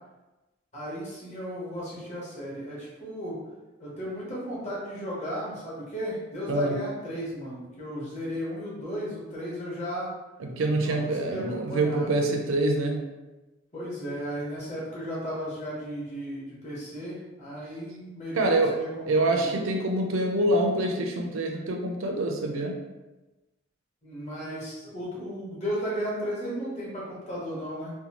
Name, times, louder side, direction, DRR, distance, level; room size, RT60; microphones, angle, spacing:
voice 1, 0.7-3.4 3.8-10.1 10.8-12.1 13.7-19.5 24.0-27.9, equal, 35° left, -6 dB, 1.0 m, -35 dB
voice 2, 6.5-6.8 10.4-13.1 18.3-18.8 19.1-22.8, right 2 dB, 80° right, 2 dB, 0.5 m, -25 dB
2.6 x 2.2 x 2.9 m, 1.1 s
head